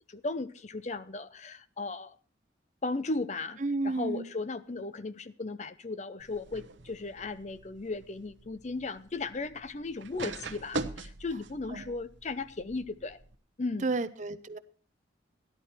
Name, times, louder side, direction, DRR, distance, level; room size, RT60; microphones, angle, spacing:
voice 1, 0.1-2.1 2.8-3.6 3.8-13.2 13.6-13.9, left 3 dB, 35° left, 14 dB, 0.5 m, -36 dB
voice 2, 3.6-4.3 11.7-11.9 13.8-14.6, right 3 dB, 40° right, 12 dB, 0.6 m, -31 dB
sound 1, 6.2-13.4, right 3 dB, 70° right, 1.0 m, -43 dB
13.5 x 11.0 x 4.3 m, 0.41 s
head